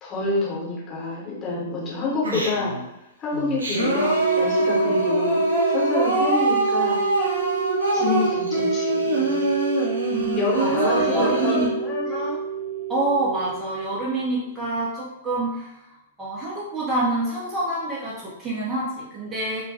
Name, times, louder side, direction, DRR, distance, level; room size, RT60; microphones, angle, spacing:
voice 1, 0.0-2.8 3.2-7.0 7.9-9.6 10.4-12.0, left 3 dB, 25° left, -6 dB, 1.0 m, -28 dB
Singing, 2.2-2.8 3.3-11.7, right 1 dB, 70° right, 0.7 m, -24 dB
sound 1, 3.7-14.4, right 5 dB, 80° left, 0.5 m, -27 dB
voice 2, 10.1-11.7 12.1-12.4 12.9-19.6, right 2 dB, 15° right, -7 dB, 0.5 m, -27 dB
2.2 x 2.2 x 2.7 m, 0.87 s
figure-of-eight pair, 105°, 0 cm